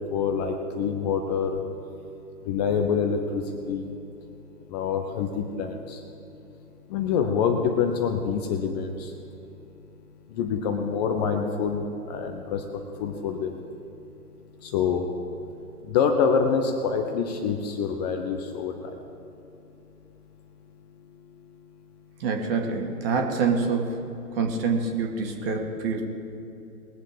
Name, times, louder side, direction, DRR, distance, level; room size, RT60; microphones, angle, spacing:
voice 1, 0.1-1.6 2.5-3.9 4.7-6.0 6.9-9.1 10.4-12.6 13.0-13.5 14.6-15.0 15.9-18.7, left 6 dB, 25° left, 4 dB, 0.9 m, -26 dB
voice 2, 22.2-24.0 24.3-26.0, right 4 dB, 40° right, 2 dB, 2.0 m, -26 dB
21.0 x 7.4 x 5.1 m, 2.9 s
figure-of-eight pair, 130°, 46 cm